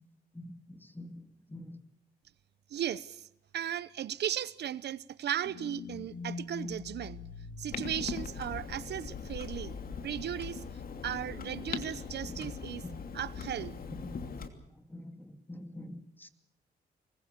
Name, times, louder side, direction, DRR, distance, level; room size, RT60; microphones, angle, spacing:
voice 1, 2.7-3.3 3.5-7.2 7.6-9.7 10.0-10.6 11.0-12.8 13.1-13.8, right 10 dB, 75° right, 0.8 m, -36 dB
sound 1, 5.4-11.1 11.5-11.6, left 4 dB, 85° left, 3.2 m, -45 dB
Clock, 7.7-14.5, left 5 dB, 55° left, 2.9 m, -40 dB
voice 2, 14.9-16.3, left 1 dB, 10° left, 2.6 m, -45 dB
25.0 x 20.5 x 6.9 m
cardioid pair, 95°, 17 cm